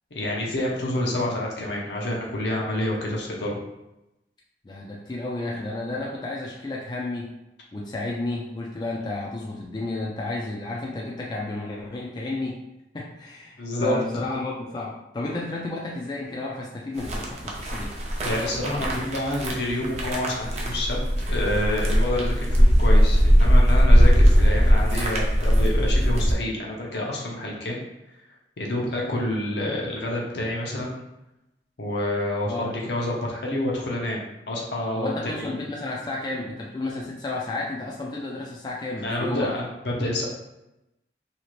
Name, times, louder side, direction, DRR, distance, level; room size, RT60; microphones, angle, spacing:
voice 1, 0.1-3.6 13.6-13.9 18.2-21.0 21.3-27.8 28.6-30.9 31.8-34.2 34.5-35.5 39.0-40.3, left 1 dB, 75° left, -2 dB, 0.7 m, -28 dB
voice 2, 4.6-7.3 7.7-12.7 12.9-17.9 32.5-32.7 34.9-39.5, left 2 dB, 25° left, -2 dB, 0.3 m, -32 dB
sound 1, 17.0-26.3, equal, 40° right, 0.5 m, -19 dB
2.8 x 2.4 x 3.0 m, 0.92 s
head